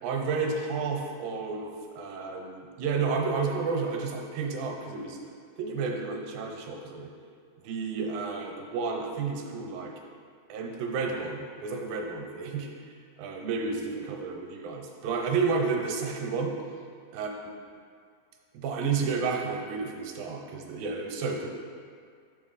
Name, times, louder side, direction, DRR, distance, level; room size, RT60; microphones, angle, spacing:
voice 1, 0.0-1.7 2.0-5.2 5.6-7.1 7.6-9.9 10.5-12.7 13.2-16.5 17.1-17.3 18.5-21.5, right 4 dB, 80° right, 1 dB, 2.4 m, -31 dB
7.1 x 6.1 x 4.0 m, 2.1 s
omnidirectional pair, 4.1 m